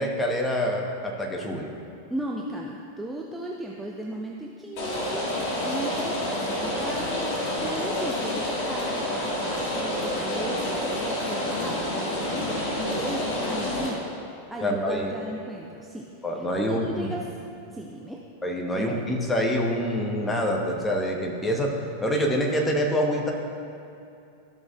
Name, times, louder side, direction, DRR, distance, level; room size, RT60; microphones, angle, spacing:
voice 1, 0.0-1.7 14.6-15.1 16.2-17.1 18.4-23.3, equal, 10° left, 0 dB, 1.1 m, -26 dB
voice 2, 2.1-14.0 14.5-17.3 17.7-18.2 18.7-19.0, right 1 dB, 5° right, -2 dB, 0.6 m, -36 dB
Rain, 4.8-13.9, left 1 dB, 45° left, 1.8 m, -28 dB
13.5 x 6.2 x 2.4 m, 2.6 s
figure-of-eight pair, 90°, 0 cm